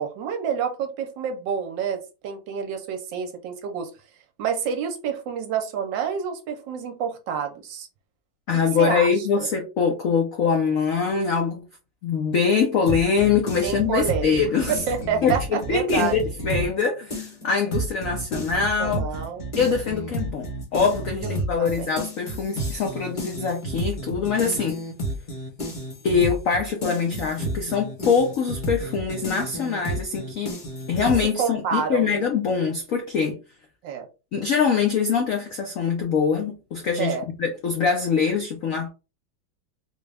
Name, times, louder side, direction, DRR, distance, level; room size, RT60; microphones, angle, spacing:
voice 1, 0.0-3.9 4.4-7.9 8.5-9.5 13.6-14.4 14.7-16.1 18.8-19.4 21.2-21.3 21.6-21.9 31.2-32.1 33.8-34.1 37.0-37.2, right 7 dB, 70° right, 1.3 m, -28 dB
voice 2, 8.5-11.6 12.0-14.7 15.2-19.0 19.6-24.8 26.0-30.5 30.9-33.4 34.3-37.1 37.4-38.9, left 6 dB, 80° left, 0.7 m, -23 dB
sound 1, 12.9-16.8 17.1-31.3, right 1 dB, 40° left, 0.7 m, -31 dB
3.7 x 2.2 x 3.2 m
omnidirectional pair, 2.2 m